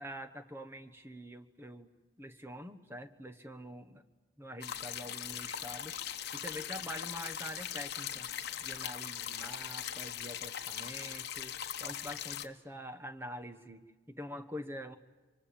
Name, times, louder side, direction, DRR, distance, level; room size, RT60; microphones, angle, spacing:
voice 1, 0.0-1.9 2.2-4.0 4.4-5.9 6.3-8.3 8.6-11.5 11.8-15.0, equal, 10° right, 8 dB, 1.3 m, -45 dB
sound 1, 4.6-12.5, left 10 dB, 60° left, 1.1 m, -40 dB
26.5 x 24.5 x 8.8 m, 1.3 s
head